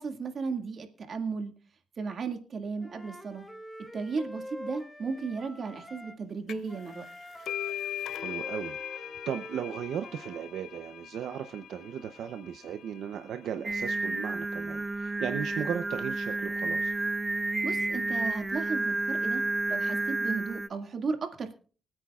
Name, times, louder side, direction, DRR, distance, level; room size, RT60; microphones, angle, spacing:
voice 1, 0.0-1.5 2.0-3.5 3.9-7.1 17.6-19.4 19.7-21.5, right 4 dB, 60° right, 5 dB, 2.1 m, -35 dB
Wind instrument woodwind instrument, 2.8-6.2 6.7-10.4, left 1 dB, 10° left, 2.0 m, -46 dB
sound 1, 6.5-6.8 7.1-14.4, left 11 dB, 80° left, 0.5 m, -40 dB
voice 2, 8.2-16.9, right 8 dB, 90° right, 8 dB, 0.7 m, -36 dB
Singing, 13.6-20.7, right 2 dB, 20° right, 0.5 m, -30 dB
25.0 x 9.0 x 2.4 m, 0.39 s
cardioid pair, 75°, 0 cm